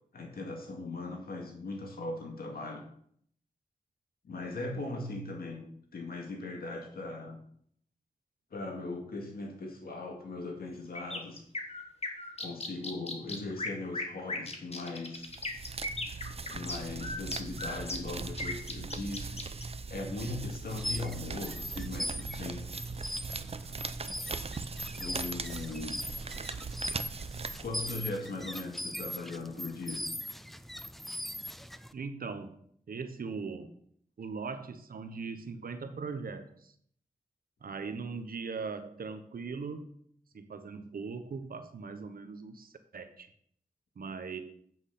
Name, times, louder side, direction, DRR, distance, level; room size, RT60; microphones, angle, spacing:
voice 1, 0.1-2.8 4.2-5.6 5.9-7.4 8.5-11.4 12.4-15.3 16.5-19.4 19.9-22.7 24.9-26.0 27.6-30.0, left 3 dB, 85° left, 2 dB, 2.1 m, -39 dB
sound 1, 10.9-19.6, left 2 dB, 40° left, 1.5 m, -37 dB
sound 2, 15.3-28.1, right 4 dB, 40° right, 0.6 m, -40 dB
sound 3, 20.6-31.9, equal, ahead, 0.5 m, -40 dB
voice 2, 31.9-32.5 32.9-33.7 34.2-36.7 37.6-39.9 40.3-43.3 44.0-44.4, right 4 dB, 75° right, 9 dB, 1.0 m, -40 dB
8.4 x 6.2 x 5.8 m, 0.65 s
cardioid pair, 60°, 15 cm